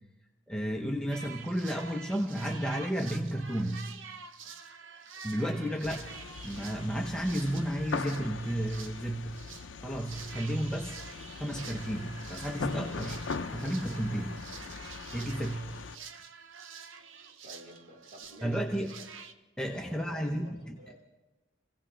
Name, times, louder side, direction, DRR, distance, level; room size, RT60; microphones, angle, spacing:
voice 1, 0.5-3.9 5.2-6.1 6.4-9.3 9.8-11.0 11.4-13.3 13.5-14.5 15.1-15.7 18.4-19.0 19.6-20.8, right 1 dB, 5° left, 1 dB, 0.7 m, -32 dB
sound 1, 1.1-9.7 10.0-19.3, right 6 dB, 75° right, 0.8 m, -48 dB
sound 2, 5.8-16.0, left 4 dB, 65° left, 0.6 m, -41 dB
voice 2, 17.4-19.1 19.9-21.0, equal, 45° right, -5 dB, 4.3 m, -51 dB
26.5 x 16.0 x 3.3 m, 1.1 s
head